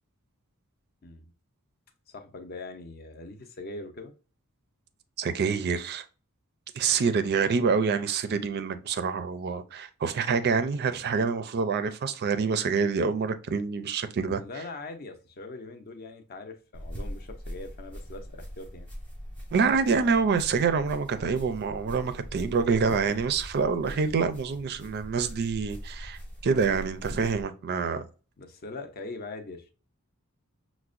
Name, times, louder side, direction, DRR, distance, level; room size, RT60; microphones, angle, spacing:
voice 1, 2.1-4.1 14.4-18.9 28.4-29.7, left 3 dB, 45° left, 0.6 m, -41 dB
voice 2, 5.2-6.0 6.7-14.4 19.5-28.1, right 5 dB, 45° right, 0.4 m, -26 dB
sound 1, 16.7-27.4, equal, 5° left, 0.8 m, -42 dB
5.7 x 2.1 x 2.4 m
head